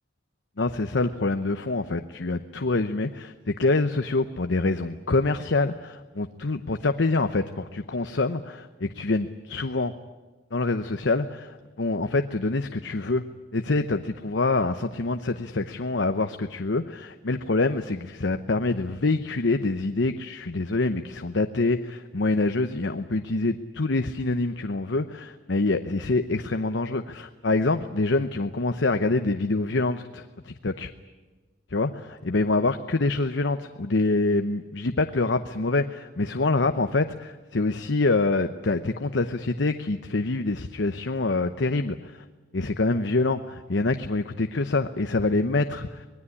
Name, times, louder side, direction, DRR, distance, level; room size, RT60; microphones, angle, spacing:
voice 1, 0.6-9.9 10.5-13.2 13.5-30.9 31.7-42.2 42.5-46.1, left 3 dB, 80° left, 8 dB, 0.9 m, -26 dB
25.5 x 20.0 x 9.9 m, 1.3 s
head